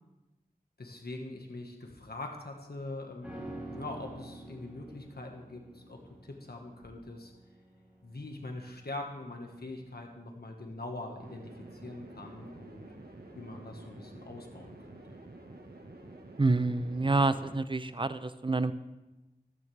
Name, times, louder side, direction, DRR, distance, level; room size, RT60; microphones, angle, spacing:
voice 1, 0.8-7.3 8.0-12.9 13.3-15.2, left 2 dB, 90° left, 2 dB, 1.6 m, -43 dB
sound 1, 3.2-12.6 12.9-13.0, right 1 dB, 5° right, 4.7 m, -49 dB
sound 2, 11.2-17.6, right 2 dB, 85° right, 1.6 m, -49 dB
voice 2, 16.4-18.7, right 3 dB, 30° right, 13 dB, 0.7 m, -28 dB
15.0 x 12.0 x 3.4 m, 1.0 s
wide cardioid pair, 40°, 16 cm